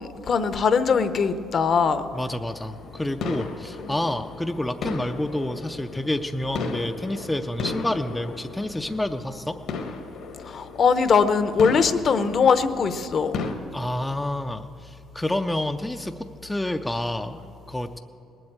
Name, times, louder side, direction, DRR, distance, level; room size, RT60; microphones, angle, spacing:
voice 1, 0.0-2.1 3.9-4.0 10.4-13.4, left 5 dB, 45° left, 11 dB, 0.7 m, -21 dB
voice 2, 2.1-9.6 13.7-18.0, left 1 dB, 10° left, 6 dB, 0.4 m, -29 dB
sound 1, 2.5-13.5, left 4 dB, 70° left, 1.3 m, -36 dB
19.0 x 7.8 x 8.8 m, 2.7 s
cardioid pair, 125°, 0 cm